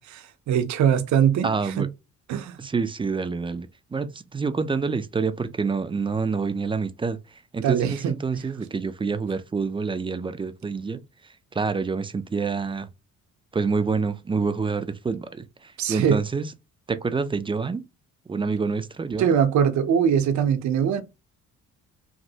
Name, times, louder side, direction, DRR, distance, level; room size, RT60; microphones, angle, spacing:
voice 1, 0.0-1.5 1.8-1.9 2.3-2.6 7.6-8.2 15.8-16.2 19.2-21.0, right 8 dB, 70° right, 0.6 m, -22 dB
voice 2, 1.4-1.9 2.6-11.0 11.5-12.9 13.5-16.5 16.9-17.8 18.3-19.4, right 4 dB, 15° right, 0.3 m, -27 dB
3.1 x 2.5 x 2.7 m
cardioid pair, 90°, 30 cm